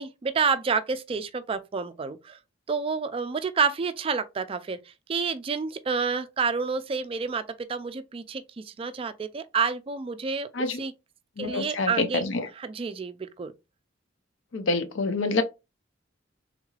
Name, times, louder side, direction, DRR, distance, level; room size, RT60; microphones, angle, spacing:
voice 1, 0.0-2.4 2.7-4.8 5.1-10.5 10.8-10.9 11.4-12.3 12.6-13.5, right 5 dB, 30° right, 0.3 m, -29 dB
voice 2, 11.4-12.5 14.5-15.4, left 3 dB, 75° left, 0.6 m, -27 dB
3.6 x 3.1 x 2.3 m
head